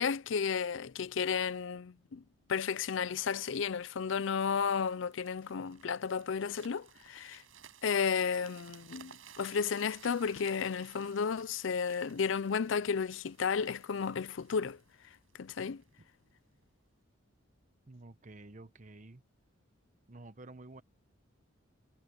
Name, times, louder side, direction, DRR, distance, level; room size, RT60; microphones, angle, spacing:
voice 1, 0.0-2.2 2.5-7.4 7.8-14.8 15.4-15.8, left 6 dB, 70° left, 0.5 m, -33 dB
sound 1, 4.1-15.9 16.5-16.7, right 8 dB, 85° right, 7.6 m, -58 dB
voice 2, 17.9-19.2 20.1-20.8, right 2 dB, 40° right, 1.0 m, -51 dB
head